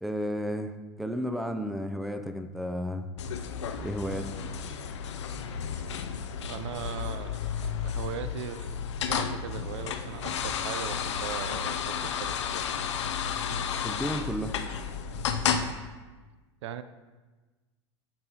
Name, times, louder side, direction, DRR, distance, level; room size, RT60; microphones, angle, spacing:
voice 1, 0.0-3.1 3.8-4.3 13.8-14.6, equal, ahead, 8 dB, 0.4 m, -33 dB
sound 1, 3.2-15.7, left 7 dB, 80° left, 0.5 m, -32 dB
voice 2, 6.4-12.4 16.6-16.8, right 9 dB, 75° right, 12 dB, 0.4 m, -39 dB
7.9 x 4.2 x 3.8 m, 1.3 s
hypercardioid pair, 90°, 15 cm